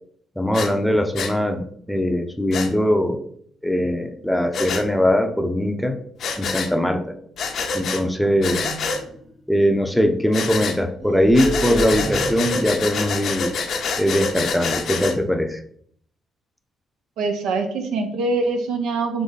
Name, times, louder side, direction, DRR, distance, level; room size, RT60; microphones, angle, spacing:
voice 1, 0.4-3.2 3.6-6.0 6.4-7.0 7.7-8.7 9.5-13.5 14.0-15.6, equal, 5° left, 5 dB, 0.6 m, -21 dB
Breathing, 0.5-0.7 1.2-1.3 2.5-2.7 4.5-4.8 6.2-6.7 7.4-8.0 8.4-9.0 10.3-10.8 11.3-15.2, left 4 dB, 65° left, 0.6 m, -26 dB
sound 1, 8.9-9.3 11.0-13.0, right 1 dB, 30° right, 1.2 m, -29 dB
voice 2, 17.2-19.2, right 3 dB, 85° right, 5 dB, 0.7 m, -24 dB
3.8 x 3.1 x 4.0 m, 0.64 s
cardioid pair, 90°, 0 cm